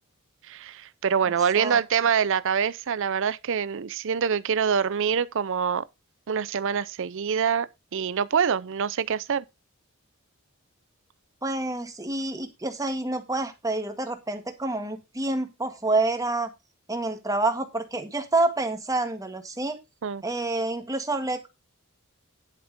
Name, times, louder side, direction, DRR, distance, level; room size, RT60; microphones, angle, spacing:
voice 1, 0.5-5.9 6.3-7.7 7.9-9.4 20.0-20.2, right 7 dB, 60° right, 0.5 m, -25 dB
voice 2, 11.4-16.5 16.9-19.8 20.2-21.5, right 2 dB, 15° right, 1.7 m, -28 dB
11.0 x 5.6 x 5.2 m
head